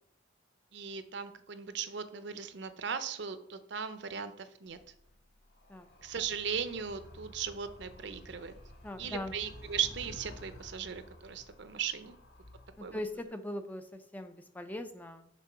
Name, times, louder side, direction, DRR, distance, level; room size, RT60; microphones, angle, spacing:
voice 1, 0.7-4.8 6.0-8.5 9.0-12.1 12.8-13.0, right 7 dB, 60° right, 11 dB, 0.6 m, -37 dB
Animal, 4.7-13.3, left 1 dB, 55° left, 0.9 m, -52 dB
voice 2, 8.8-9.3 12.9-15.3, left 1 dB, 10° left, 8 dB, 0.3 m, -40 dB
6.1 x 3.6 x 5.5 m, 0.69 s
head